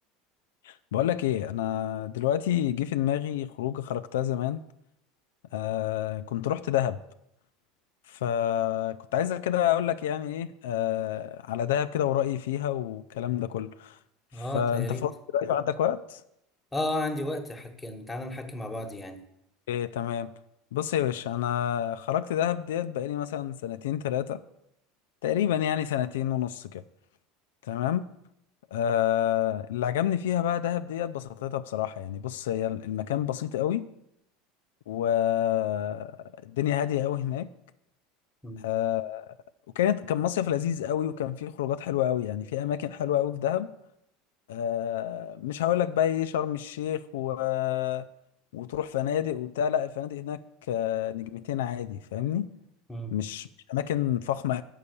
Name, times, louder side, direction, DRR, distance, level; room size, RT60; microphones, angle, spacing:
voice 1, 0.6-4.6 5.5-7.0 8.1-14.0 14.3-16.2 19.7-20.3 20.7-24.4 25.2-26.8 27.7-28.0 28.7-33.9 34.9-36.1 36.4-37.5 38.6-39.3 39.8-43.7 44.5-48.1 48.5-50.4 50.7-52.5 53.1-54.6, left 11 dB, 85° left, 10 dB, 0.3 m, -28 dB
voice 2, 14.3-15.1 16.7-19.2 38.4-38.6 52.9-53.2, left 1 dB, 10° left, 4 dB, 1.2 m, -33 dB
7.1 x 5.5 x 6.7 m, 0.80 s
supercardioid pair, 100°, 0 cm